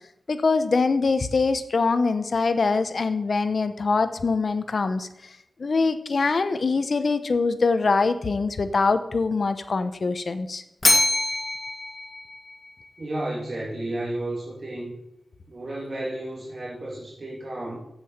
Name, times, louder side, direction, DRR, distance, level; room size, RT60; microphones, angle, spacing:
voice 1, 0.3-5.1 5.6-10.6, left 4 dB, 60° left, 10 dB, 0.9 m, -23 dB
Bell, 10.8-13.0, left 1 dB, 30° left, 1.8 m, -24 dB
voice 2, 13.0-14.9 15.5-17.8, right 1 dB, 55° right, -5 dB, 2.7 m, -32 dB
7.8 x 6.9 x 7.2 m, 0.82 s
wide cardioid pair, 80°, 0 cm